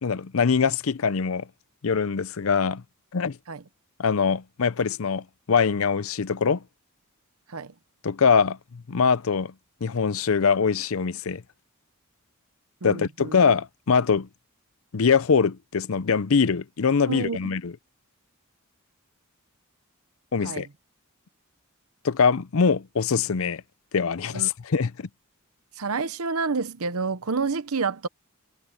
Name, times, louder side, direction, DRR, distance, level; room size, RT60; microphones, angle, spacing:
voice 1, 0.0-1.5 1.8-2.8 3.1-3.4 4.0-6.6 8.0-9.5 9.8-11.4 12.8-14.3 14.9-17.7 20.3-20.7 22.0-23.6 23.9-25.1, left 5 dB, 65° left, 0.6 m, -23 dB
voice 2, 12.8-13.4 17.1-17.4 20.4-20.6 24.3-24.5 25.8-28.1, right 4 dB, 75° right, 0.9 m, -29 dB
head